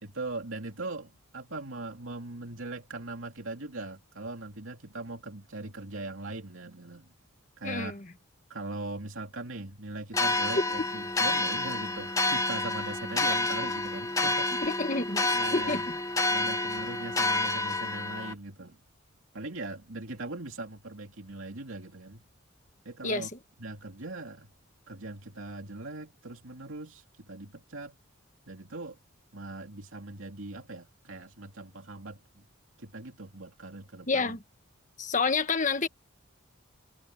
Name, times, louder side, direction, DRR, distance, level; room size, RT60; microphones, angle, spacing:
voice 1, 0.0-7.1 7.6-8.0 8.5-14.6 15.3-15.9 16.3-18.8 19.3-22.2 22.8-23.3 23.6-24.5 24.9-28.0 28.5-29.0 29.3-32.4 32.8-34.4, right 2 dB, 75° right, 2.7 m, -40 dB
voice 2, 7.6-8.1 10.5-10.6 14.6-16.0 23.0-23.4 34.1-34.4 35.0-35.9, left 4 dB, 35° left, 1.5 m, -29 dB
sound 1, 10.1-18.3, left 2 dB, 15° left, 1.5 m, -29 dB
head